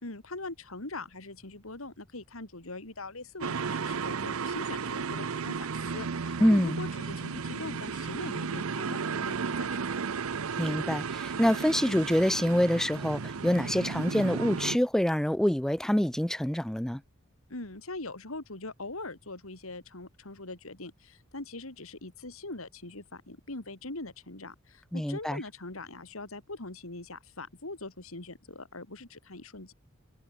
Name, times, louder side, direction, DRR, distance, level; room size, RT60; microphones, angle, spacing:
voice 1, 0.0-9.9 17.5-29.7, left 2 dB, 70° left, 3.3 m, -42 dB
sound 1, 3.4-14.8, right 5 dB, 75° right, 0.7 m, -34 dB
voice 2, 6.4-6.8 10.6-17.0 24.9-25.4, equal, ahead, 0.3 m, -26 dB
head